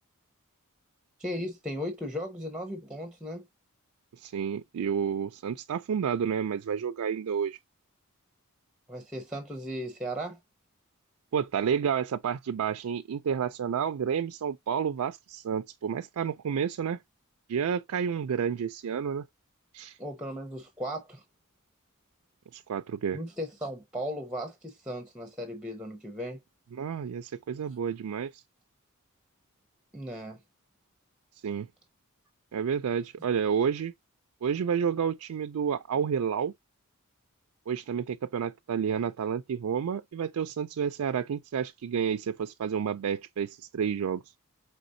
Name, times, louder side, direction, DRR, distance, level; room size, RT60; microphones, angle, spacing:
voice 1, 1.2-3.5 8.9-10.4 20.0-21.2 23.1-26.4 29.9-30.4, equal, 5° right, 0.9 m, -36 dB
voice 2, 4.1-7.6 11.3-17.0 17.5-19.3 19.7-20.0 22.5-23.2 26.7-28.4 31.4-31.7 32.5-33.9 34.4-36.5 37.7-44.2, right 7 dB, 80° right, 0.4 m, -30 dB
5.1 x 3.4 x 2.6 m
head